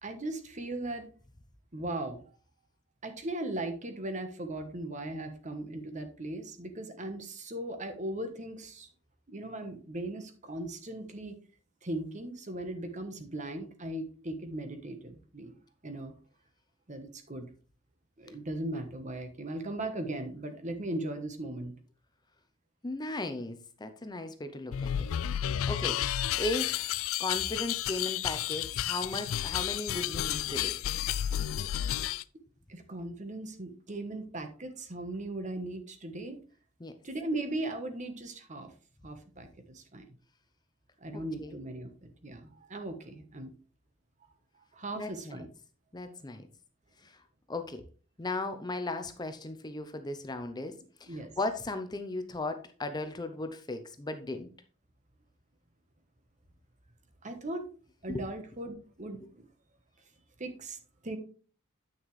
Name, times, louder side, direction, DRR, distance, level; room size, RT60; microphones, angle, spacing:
voice 1, 0.0-1.1 1.7-2.3 3.0-8.9 9.3-11.4 11.8-15.6 15.8-16.1 16.9-17.5 18.2-21.7 32.7-36.4 37.0-38.7 39.0-40.2 41.0-41.9 42.2-43.5 44.7-45.5 51.0-51.3 57.2-57.7 58.0-59.3 60.4-61.2, right 1 dB, 35° right, 8 dB, 1.2 m, -38 dB
voice 2, 22.8-24.9 25.3-26.0 26.3-26.9 27.2-30.8 36.8-36.9 41.1-41.6 44.9-45.4 45.9-46.5 47.0-47.2 47.5-47.8 48.2-54.5 58.1-58.3 59.2-59.3, left 2 dB, 20° left, 8 dB, 0.6 m, -36 dB
sound 1, 24.7-32.2, left 11 dB, 90° left, 0.4 m, -31 dB
9.2 x 6.2 x 3.2 m, 0.39 s
head